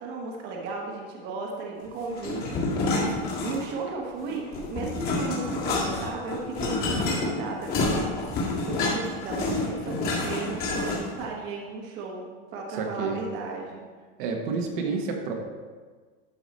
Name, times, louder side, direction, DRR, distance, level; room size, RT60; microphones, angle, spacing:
voice 1, 0.0-13.8, right 3 dB, 35° right, -1 dB, 1.2 m, -35 dB
sound 1, 2.2-3.9 4.2-11.2, left 2 dB, 35° left, 1.9 m, -28 dB
voice 2, 12.8-13.2 14.2-15.3, right 4 dB, 60° right, 2 dB, 1.3 m, -29 dB
11.5 x 4.9 x 4.2 m, 1.5 s
supercardioid pair, 165°, 29 cm